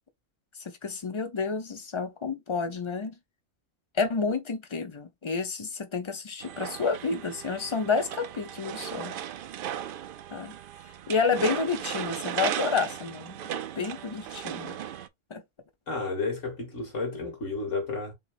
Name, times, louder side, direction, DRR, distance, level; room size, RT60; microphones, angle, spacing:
voice 1, 0.6-3.1 3.9-9.2 10.3-10.6 11.1-14.8 15.3-15.4, left 4 dB, 30° left, 0.7 m, -30 dB
sound 1, 6.4-15.1, right 10 dB, 60° right, 0.5 m, -36 dB
voice 2, 15.9-18.1, left 3 dB, 70° left, 2.4 m, -32 dB
6.9 x 3.2 x 2.5 m
omnidirectional pair, 1.3 m